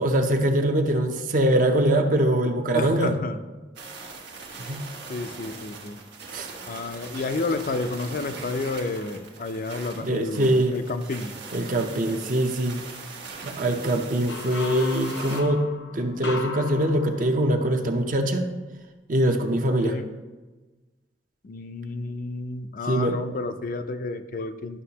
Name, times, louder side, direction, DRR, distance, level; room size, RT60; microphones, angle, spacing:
voice 1, 0.0-3.1 4.6-4.8 6.3-6.5 10.0-10.8 11.5-12.8 13.4-15.7 15.9-18.5 19.1-19.9 22.9-23.2, right 1 dB, 50° right, 5 dB, 0.7 m, -23 dB
voice 2, 2.7-3.4 5.1-6.0 6.7-11.3 12.1-12.2 19.8-20.1 21.4-24.8, left 3 dB, 50° left, 9 dB, 0.4 m, -31 dB
sound 1, 3.8-15.4, right 4 dB, 90° right, 1.2 m, -41 dB
sound 2, 14.3-17.9, left 4 dB, 80° left, 0.7 m, -36 dB
11.0 x 6.1 x 2.9 m, 1.2 s
head